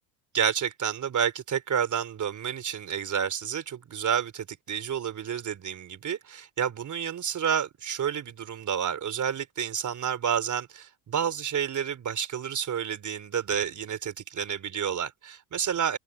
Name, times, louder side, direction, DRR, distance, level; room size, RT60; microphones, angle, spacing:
voice 1, 0.3-16.0, right 8 dB, 35° right, 3.7 m, -30 dB
open air
supercardioid pair, 105°, 49 cm